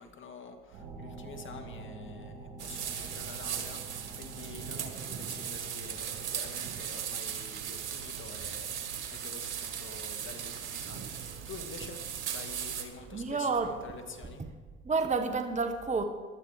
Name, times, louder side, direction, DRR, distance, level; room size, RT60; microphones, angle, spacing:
voice 1, 0.0-8.8 9.1-12.0 12.3-14.4, left 4 dB, 35° left, 5 dB, 2.3 m, -48 dB
sound 1, 0.7-9.9, right 3 dB, 70° right, 5.1 m, -48 dB
sound 2, 2.6-12.8, right 8 dB, 90° right, 1.6 m, -38 dB
sound 3, 2.8-14.3, right 6 dB, 45° right, 1.4 m, -50 dB
voice 2, 13.1-13.7 14.8-16.1, right 4 dB, 20° right, 7 dB, 1.4 m, -29 dB
17.5 x 11.5 x 5.0 m, 1.4 s
hypercardioid pair, 75°, 33 cm